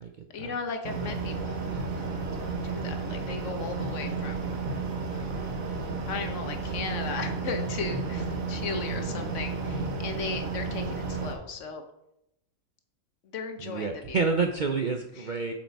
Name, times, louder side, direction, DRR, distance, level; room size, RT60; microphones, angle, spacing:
voice 1, 0.3-1.9 2.6-4.4 5.1-5.3 6.1-11.8 13.3-14.2 15.2-15.3, left 5 dB, 65° left, 6 dB, 1.2 m, -36 dB
sound 1, 0.8-11.3, right 4 dB, 75° right, 1.5 m, -32 dB
voice 2, 8.9-9.4 13.6-15.5, right 4 dB, 55° right, 4 dB, 0.5 m, -29 dB
7.2 x 5.7 x 4.5 m, 0.83 s
omnidirectional pair, 1.4 m